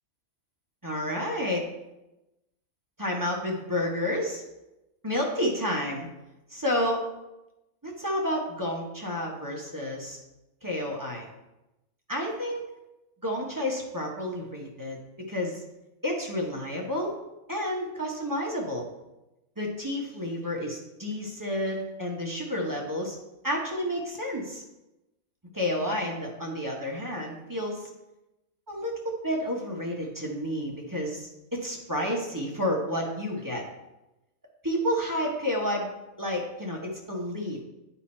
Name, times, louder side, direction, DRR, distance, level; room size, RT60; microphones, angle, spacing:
voice 1, 0.8-1.7 3.0-4.4 5.0-6.1 6.5-7.0 7.8-10.2 10.6-11.3 12.1-12.6 13.2-15.6 16.0-17.1 17.5-18.9 19.6-23.2 23.4-24.6 25.5-27.9 28.7-33.6 34.6-35.9 36.2-37.6, left 1 dB, 15° right, -2 dB, 0.9 m, -30 dB
9.2 x 4.4 x 4.3 m, 0.97 s
omnidirectional pair, 1.5 m